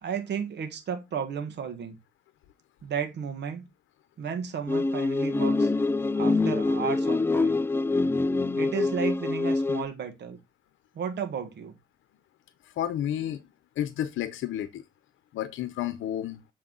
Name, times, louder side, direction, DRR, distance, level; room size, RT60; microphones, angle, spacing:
voice 1, 0.0-2.0 2.8-3.7 4.2-5.7 6.2-7.6 8.6-10.4 10.9-11.7, right 7 dB, 60° right, 1.5 m, -33 dB
sound 1, 4.7-9.8, left 3 dB, 10° left, 0.3 m, -25 dB
voice 2, 12.8-13.4 13.8-14.8 15.3-16.4, left 11 dB, 80° left, 0.8 m, -31 dB
7.5 x 4.6 x 3.9 m
cardioid pair, 90°, 20 cm